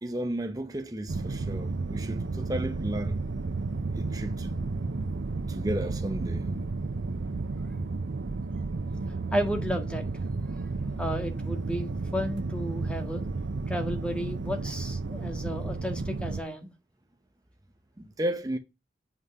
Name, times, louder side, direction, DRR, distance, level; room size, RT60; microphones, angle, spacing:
voice 1, 0.0-3.2 3.9-4.6 5.5-6.5 18.0-18.6, right 1 dB, 20° right, 0.7 m, -33 dB
sound 1, 1.1-16.4, right 3 dB, 85° right, 0.6 m, -32 dB
voice 2, 9.3-10.0 10.5-10.7 11.0-13.2 13.7-16.7, equal, 5° left, 1.7 m, -33 dB
7.6 x 5.9 x 5.5 m
head